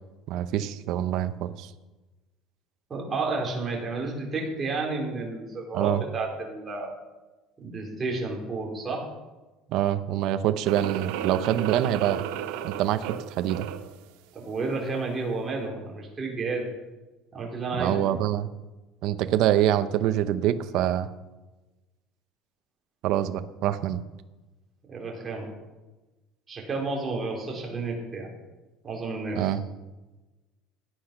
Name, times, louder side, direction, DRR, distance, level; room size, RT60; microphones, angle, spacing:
voice 1, 0.3-1.7 5.7-6.0 9.7-12.2 12.6-13.7 17.8-18.5 19.0-21.1 23.0-24.0 29.3-29.6, right 11 dB, 55° right, 10 dB, 0.8 m, -25 dB
voice 2, 2.9-7.0 7.6-9.0 14.3-16.7 17.3-18.0 24.9-25.5 26.5-28.3 28.8-29.6, right 3 dB, 20° right, -1 dB, 3.6 m, -31 dB
sound 1, 10.6-14.0, right 10 dB, 90° right, 1.0 m, -34 dB
17.0 x 9.9 x 6.0 m, 1.1 s
cardioid pair, 165°, 0 cm